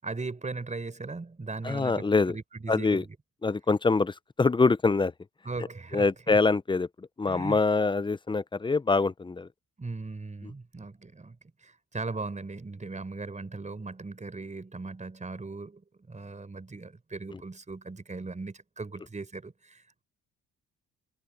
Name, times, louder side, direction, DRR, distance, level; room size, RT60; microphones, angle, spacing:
voice 1, 0.0-3.2 5.4-6.4 7.3-7.6 9.8-11.4 11.6-15.8 16.1-20.0, right 3 dB, 25° right, 5.1 m, -38 dB
voice 2, 1.6-2.4 2.7-3.0 3.4-5.1 5.9-6.9 7.2-9.5, left 3 dB, 15° left, 0.6 m, -24 dB
cardioid pair, 90°, 30 cm